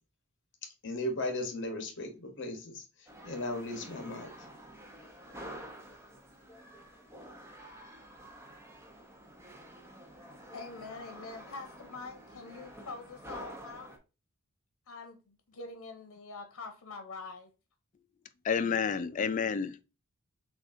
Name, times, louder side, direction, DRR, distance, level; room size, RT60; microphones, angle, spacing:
voice 1, 0.8-2.8 3.2-4.3, left 1 dB, 55° left, 1.0 m, -36 dB
sound 1, 3.1-14.0, equal, 10° right, 0.7 m, -49 dB
voice 2, 10.5-14.0 14.9-17.5, left 3 dB, 85° left, 0.7 m, -45 dB
voice 3, 18.4-19.8, left 6 dB, 35° left, 0.3 m, -30 dB
6.3 x 2.4 x 2.5 m
head